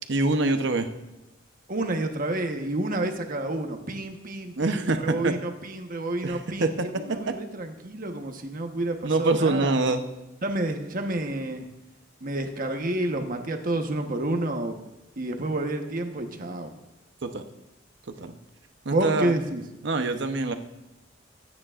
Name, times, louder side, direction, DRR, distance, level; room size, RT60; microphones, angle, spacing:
voice 1, 0.1-0.9 4.6-5.3 6.2-7.3 9.0-10.0 17.2-17.4 18.1-18.3 18.8-19.3 19.8-20.5, right 2 dB, 65° right, 7 dB, 0.9 m, -25 dB
voice 2, 1.7-9.8 10.4-11.7 12.2-14.8 15.2-16.7 18.9-19.6, right 1 dB, 50° right, 5 dB, 1.2 m, -29 dB
24.0 x 9.5 x 2.5 m, 0.99 s
head